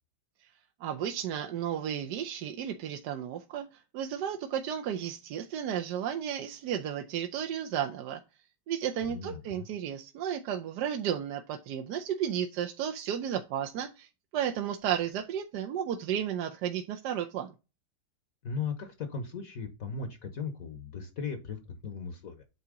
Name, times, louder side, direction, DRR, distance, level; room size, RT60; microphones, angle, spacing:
voice 1, 0.8-8.2 8.7-17.5, right 9 dB, 70° right, 5 dB, 1.2 m, -33 dB
voice 2, 9.1-9.6 18.4-22.4, left 5 dB, 55° left, 8 dB, 1.2 m, -37 dB
8.2 x 2.9 x 4.9 m, 0.29 s
omnidirectional pair, 2.0 m